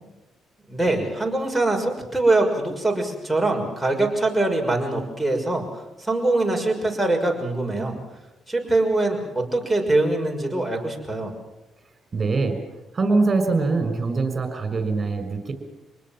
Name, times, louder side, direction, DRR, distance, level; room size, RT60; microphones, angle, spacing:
voice 1, 0.7-8.0 8.5-11.3, right 2 dB, ahead, 0 dB, 6.3 m, -23 dB
voice 2, 12.1-12.6 12.9-15.5, right 3 dB, 35° right, 8 dB, 6.1 m, -23 dB
26.5 x 20.0 x 7.6 m, 0.97 s
cardioid pair, 90°, 0 cm